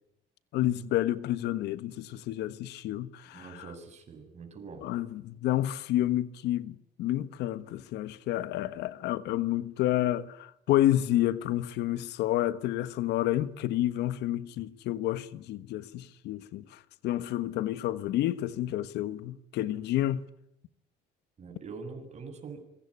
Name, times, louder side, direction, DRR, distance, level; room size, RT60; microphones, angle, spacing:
voice 1, 0.5-3.7 4.8-20.3, left 13 dB, 80° left, 1.3 m, -30 dB
voice 2, 3.3-4.9 21.4-22.6, right 4 dB, 40° right, 6.9 m, -44 dB
26.0 x 22.5 x 9.9 m
cardioid pair, 110°, 17 cm